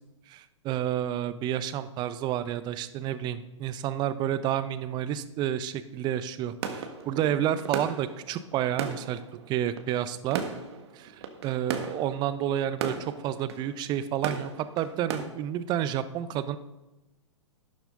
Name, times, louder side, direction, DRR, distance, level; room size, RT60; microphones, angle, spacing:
voice 1, 0.3-9.2 9.5-10.4 10.9-16.6, right 11 dB, 25° right, 14 dB, 0.7 m, -30 dB
sound 1, 6.6-15.3, right 6 dB, 55° right, 1.5 m, -37 dB
12.0 x 10.5 x 3.8 m, 1.0 s
figure-of-eight pair, 110°, 16 cm